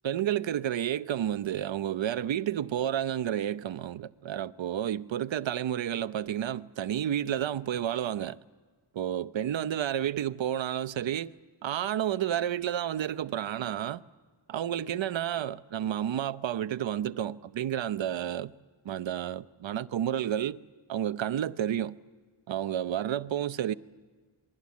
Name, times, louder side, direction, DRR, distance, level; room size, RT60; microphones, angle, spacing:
voice 1, 0.0-8.4 8.9-11.3 11.6-14.0 14.5-18.5 18.8-20.6 20.9-22.0 22.5-23.7, right 10 dB, 75° right, 0.8 m, -31 dB
27.5 x 22.0 x 8.4 m
wide cardioid pair, 155°, 45 cm